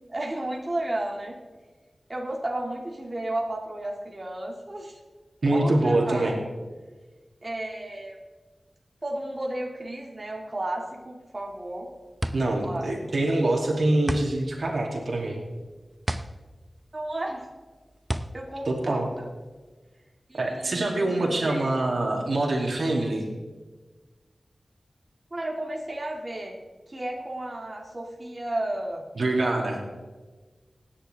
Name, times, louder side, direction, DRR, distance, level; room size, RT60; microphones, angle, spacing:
voice 1, 0.1-1.4 2.1-5.0 5.5-6.4 7.4-8.2 9.0-11.9 12.6-12.9 16.9-17.5 18.3-19.3 20.3-21.8 25.3-26.6 26.9-29.1, right 1 dB, 35° right, -1 dB, 2.1 m, -33 dB
voice 2, 5.4-6.3 12.3-15.4 18.7-19.1 20.4-23.3 29.2-29.8, right 2 dB, 70° right, 0 dB, 2.5 m, -25 dB
sound 1, 11.4-19.7, right 1 dB, 15° right, 0.7 m, -35 dB
25.5 x 10.0 x 3.4 m, 1.3 s
wide cardioid pair, 80°, 0 cm